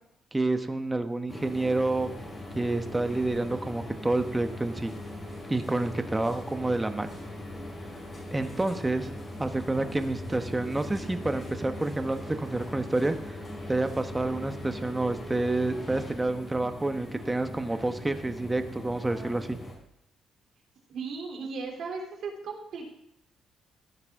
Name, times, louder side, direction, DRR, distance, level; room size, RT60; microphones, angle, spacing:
voice 1, 0.3-2.1 2.5-4.9 5.5-7.1 8.3-9.1 9.4-13.4 13.7-19.6, right 2 dB, 15° right, 8 dB, 1.1 m, -29 dB
sound 1, 1.3-19.7, left 1 dB, 30° left, 5.4 m, -40 dB
voice 2, 20.9-22.9, right 4 dB, 65° right, 1 dB, 3.3 m, -36 dB
15.0 x 9.6 x 3.7 m, 0.77 s
cardioid pair, 90°, 0 cm